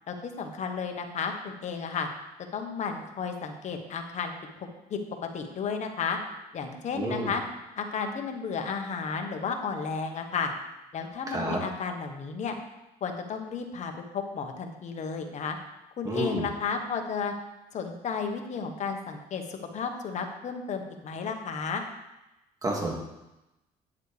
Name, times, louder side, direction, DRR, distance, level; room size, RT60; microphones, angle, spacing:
voice 1, 0.1-2.1 2.5-4.3 4.6-5.0 5.3-6.2 6.5-7.4 7.8-10.5 10.9-12.5 13.0-15.6 16.0-17.3 17.7-21.8, left 5 dB, 50° left, 4 dB, 1.2 m, -33 dB
voice 2, 6.9-7.3 11.3-11.6 16.1-16.5 22.6-22.9, right 1 dB, 25° right, -1 dB, 2.1 m, -29 dB
9.5 x 7.4 x 3.4 m, 0.95 s
cardioid pair, 100°, 15 cm